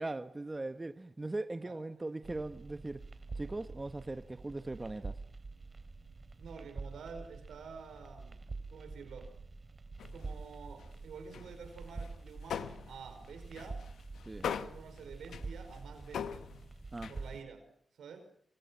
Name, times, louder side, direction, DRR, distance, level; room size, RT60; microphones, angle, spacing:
voice 1, 0.0-3.0 3.3-5.2 14.3-14.5 16.9-17.1, right 2 dB, 30° right, 10 dB, 1.3 m, -39 dB
sound 1, 2.2-17.4, right 3 dB, 50° right, 2.9 m, -47 dB
voice 2, 6.4-8.4 8.7-9.3 10.1-13.8 14.4-16.5 17.1-17.6 18.0-18.2, right 5 dB, 90° right, 8 dB, 5.1 m, -49 dB
sound 2, 10.0-11.0 11.3-17.4, left 8 dB, 90° left, 1.0 m, -43 dB
28.0 x 26.0 x 5.8 m, 0.66 s
supercardioid pair, 45°, 0 cm